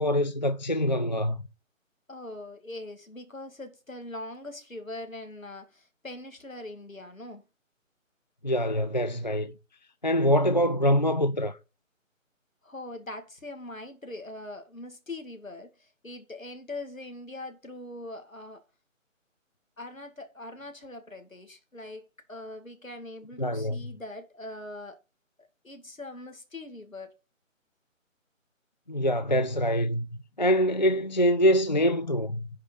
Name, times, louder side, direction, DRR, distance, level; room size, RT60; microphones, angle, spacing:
voice 1, 0.0-1.4 8.4-9.5 10.0-11.6 23.4-23.8 28.9-30.1 30.4-32.5, equal, 35° left, 0.5 m, -24 dB
voice 2, 2.1-7.4 12.6-18.6 19.8-25.0 25.6-27.1, left 2 dB, 80° left, 2.4 m, -42 dB
10.5 x 5.0 x 5.6 m
figure-of-eight pair, 150°, 40 cm